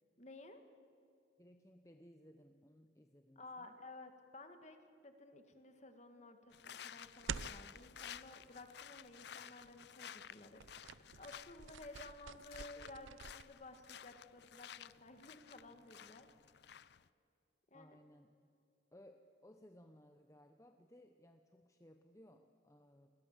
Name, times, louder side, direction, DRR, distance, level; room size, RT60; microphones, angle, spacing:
voice 1, 0.2-0.6 3.4-16.3 17.7-18.0, left 2 dB, 35° left, 7 dB, 1.8 m, -55 dB
voice 2, 1.4-3.8 17.7-18.4 18.9-23.1, equal, 15° left, 6 dB, 0.8 m, -62 dB
sound 1, 6.5-17.1, left 9 dB, 55° left, 0.5 m, -54 dB
sound 2, 7.2-7.7 10.6-13.4, right 7 dB, 80° right, 0.6 m, -47 dB
29.5 x 21.0 x 7.4 m, 2.5 s
head